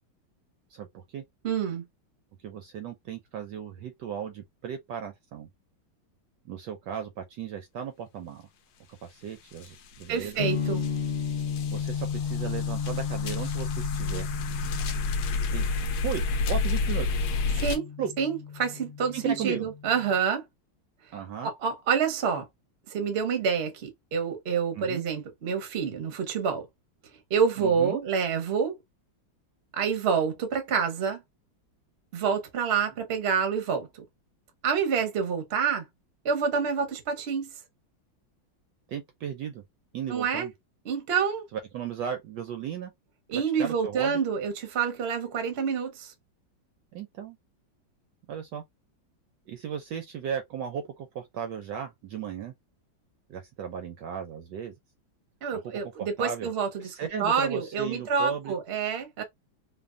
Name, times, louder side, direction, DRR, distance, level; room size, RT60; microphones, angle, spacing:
voice 1, 0.7-1.2 2.4-5.5 6.4-8.5 9.0-10.4 11.7-14.3 15.5-15.6 16.0-17.2 18.0-18.1 19.1-19.7 21.1-21.5 24.7-25.0 27.6-28.0 38.9-39.6 39.9-40.5 41.5-42.9 43.3-44.2 46.9-47.4 48.3-48.6 49.5-52.5 53.3-54.7 55.5-56.5 56.8-58.5, right 8 dB, 75° right, 1.0 m, -36 dB
voice 2, 1.4-1.8 10.1-10.8 17.5-17.9 18.2-20.4 21.4-22.4 22.9-26.7 27.3-28.8 29.7-31.2 32.1-34.0 34.6-35.8 36.2-37.5 40.1-40.5 40.8-41.5 43.3-46.1 55.4-56.9 57.2-59.2, right 6 dB, 60° right, 0.6 m, -27 dB
sound 1, 9.6-9.7 10.0-17.8, left 3 dB, 75° left, 0.9 m, -30 dB
sound 2, 10.4-20.2, left 7 dB, 45° left, 0.6 m, -34 dB
3.3 x 2.1 x 2.4 m
omnidirectional pair, 2.2 m